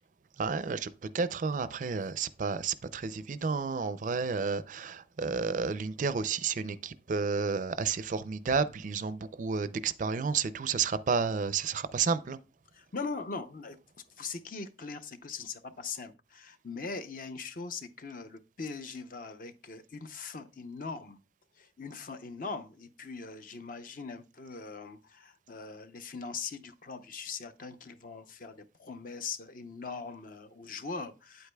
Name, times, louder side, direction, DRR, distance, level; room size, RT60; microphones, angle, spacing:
voice 1, 0.4-12.4, right 5 dB, 45° right, 0.4 m, -31 dB
voice 2, 12.7-13.8 14.2-21.2 21.6-31.5, left 4 dB, 50° left, 0.6 m, -41 dB
8.8 x 8.0 x 2.3 m
head